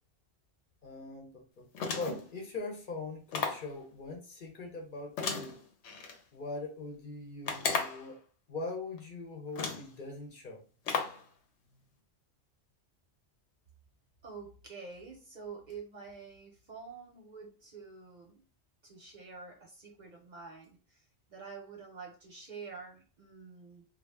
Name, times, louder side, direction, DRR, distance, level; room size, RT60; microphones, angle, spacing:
voice 1, 0.8-1.7 1.9-5.6 6.3-8.2 8.5-10.6, left 3 dB, 55° left, 1 dB, 0.7 m, -41 dB
sound 1, 1.7-2.3 3.3-3.7 5.2-6.2 7.5-8.1 9.0-9.1 9.5-9.9 10.9-11.2, left 5 dB, 90° left, 0.9 m, -34 dB
voice 2, 14.2-18.4 18.8-21.0 21.3-23.8, right 5 dB, 50° right, 1 dB, 0.6 m, -48 dB
2.3 x 2.1 x 3.2 m, 0.37 s
omnidirectional pair, 1.1 m